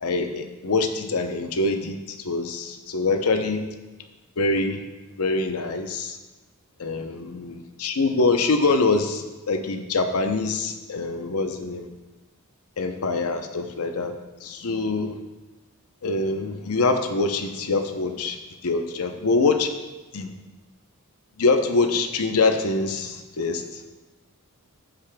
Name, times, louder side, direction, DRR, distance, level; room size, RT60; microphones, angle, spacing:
voice 1, 0.0-3.7 4.4-4.8 5.2-6.2 6.8-11.9 12.8-15.2 16.0-18.4 18.6-19.7 20.1-20.3 21.4-23.8, left 3 dB, 80° left, 6 dB, 0.7 m, -24 dB
14.5 x 4.9 x 2.2 m, 1.2 s
head